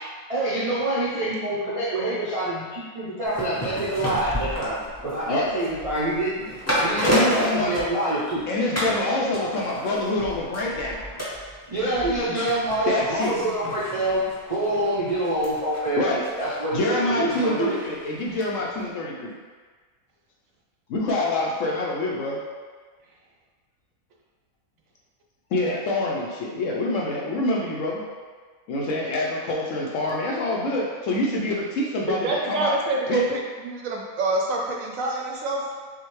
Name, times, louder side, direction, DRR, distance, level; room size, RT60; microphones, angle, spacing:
voice 1, 0.3-6.5 6.8-8.4 9.4-9.5 11.7-14.2 14.5-17.8, right 1 dB, 45° right, -9 dB, 0.4 m, -26 dB
sound 1, 3.2-8.4 8.7-9.0 9.3-18.5 18.8-18.9, equal, 15° left, 0.6 m, -32 dB
voice 2, 7.0-7.7 8.5-11.5 12.9-13.4 16.0-16.2 16.7-19.4 20.9-22.4 25.5-28.0 28.7-32.7 33.1-33.3, left 2 dB, 70° left, -3 dB, 0.9 m, -26 dB
voice 3, 32.1-35.6, right 2 dB, 70° right, -1 dB, 0.9 m, -26 dB
6.1 x 2.2 x 3.1 m, 1.5 s
omnidirectional pair, 1.6 m